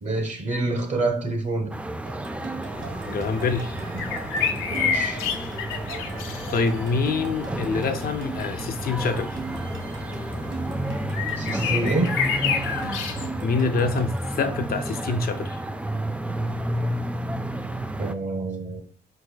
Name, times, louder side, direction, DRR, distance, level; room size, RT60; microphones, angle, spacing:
voice 1, 0.0-1.7 4.7-5.2 11.4-12.2 18.0-18.8, right 2 dB, 35° right, 1.2 m, -27 dB
sound 1, 1.7-18.1, right 1 dB, 5° right, 0.3 m, -31 dB
sound 2, 2.1-14.4, right 3 dB, 70° right, 1.3 m, -41 dB
sound 3, 2.7-13.3, left 7 dB, 85° left, 0.7 m, -31 dB
voice 2, 3.1-3.7 6.5-9.4 13.4-15.6, left 4 dB, 50° left, 0.5 m, -26 dB
4.6 x 4.6 x 2.3 m
cardioid pair, 90°, 20 cm